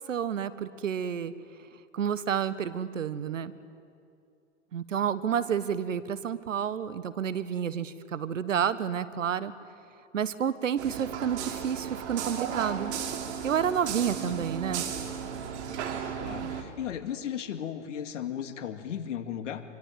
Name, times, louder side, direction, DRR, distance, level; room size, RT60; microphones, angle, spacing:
voice 1, 0.0-1.3 1.9-3.5 4.7-9.5 10.1-13.0 13.4-14.9, right 8 dB, 85° right, 15 dB, 1.4 m, -30 dB
sound 1, 10.8-16.6, right 8 dB, 65° right, 3.5 m, -35 dB
voice 2, 16.1-19.6, left 9 dB, 75° left, 9 dB, 2.3 m, -36 dB
25.5 x 24.5 x 9.3 m, 2.5 s
hypercardioid pair, 115°, 37 cm